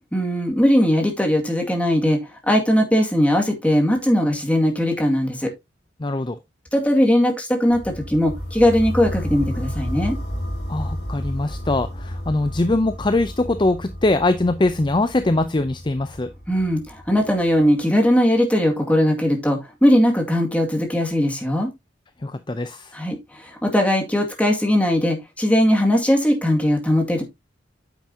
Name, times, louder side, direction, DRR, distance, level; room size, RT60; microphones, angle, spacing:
voice 1, 0.1-5.5 6.7-10.2 16.5-21.7 22.9-27.2, equal, 10° left, 2.1 m, -19 dB
voice 2, 6.0-6.4 10.7-16.3 22.2-22.9, left 2 dB, 25° left, 0.5 m, -22 dB
sound 1, 7.7-17.6, equal, 55° left, 2.3 m, -31 dB
9.2 x 7.3 x 2.8 m
head